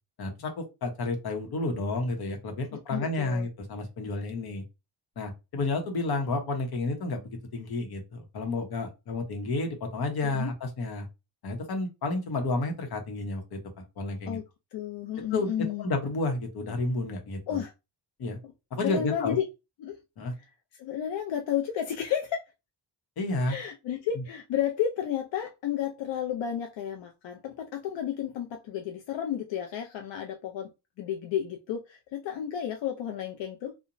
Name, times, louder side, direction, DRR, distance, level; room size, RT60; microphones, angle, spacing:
voice 1, 0.2-4.6 5.2-11.1 11.4-13.6 14.0-14.4 15.3-15.5 15.8-17.6 18.2-18.4 18.7-19.4 20.2-20.3 23.2-23.6, left 2 dB, 60° left, 0.9 m, -31 dB
voice 2, 2.7-3.5 10.3-10.5 14.3-14.4 14.7-15.9 17.5-17.7 18.8-19.4 19.8-20.0 20.8-22.4 23.5-30.7 31.0-33.7, left 9 dB, 80° left, 0.5 m, -32 dB
2.8 x 2.1 x 2.5 m
wide cardioid pair, 160°, 43 cm